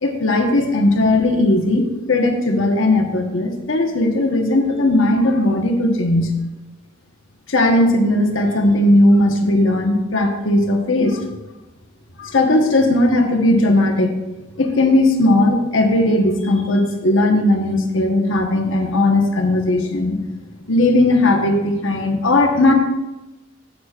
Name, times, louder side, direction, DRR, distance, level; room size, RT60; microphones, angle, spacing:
voice 1, 0.0-6.3 7.5-11.2 12.2-14.1 14.6-20.2 20.7-22.7, left 1 dB, 70° left, 3 dB, 1.2 m, -17 dB
12.5 x 8.4 x 2.5 m, 1.1 s
head